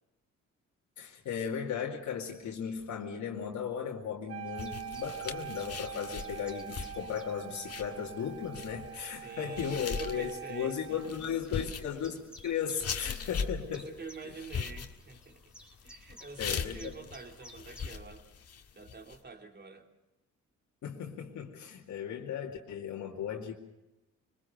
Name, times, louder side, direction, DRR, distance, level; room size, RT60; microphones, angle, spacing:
voice 1, 1.0-13.9 16.4-16.9 20.8-23.5, left 8 dB, 70° left, -1 dB, 2.4 m, -36 dB
Wind instrument woodwind instrument, 4.3-11.2, right 12 dB, 50° right, 1.2 m, -44 dB
Chirp tweet, 4.4-18.0, equal, 5° right, 3.5 m, -57 dB
sound 1, 4.6-19.2, left 6 dB, 55° left, 1.8 m, -40 dB
voice 2, 9.2-11.6 12.7-12.8 13.7-15.6 15.8-18.3 18.7-19.9, right 4 dB, 35° right, 4 dB, 3.0 m, -47 dB
24.0 x 21.0 x 6.6 m, 0.99 s
cardioid pair, 90°, 30 cm